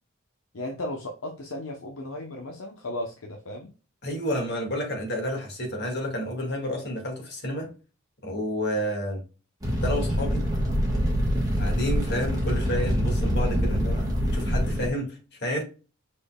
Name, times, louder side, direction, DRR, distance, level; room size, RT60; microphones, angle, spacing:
voice 1, 0.5-3.7, left 1 dB, 70° left, 0.8 m, -35 dB
voice 2, 4.0-7.7 8.2-9.2 9.8-10.4 11.6-15.6, equal, 50° left, 2.0 m, -30 dB
Fire, 9.6-14.9, equal, 15° right, 1.5 m, -25 dB
5.2 x 4.3 x 2.2 m
head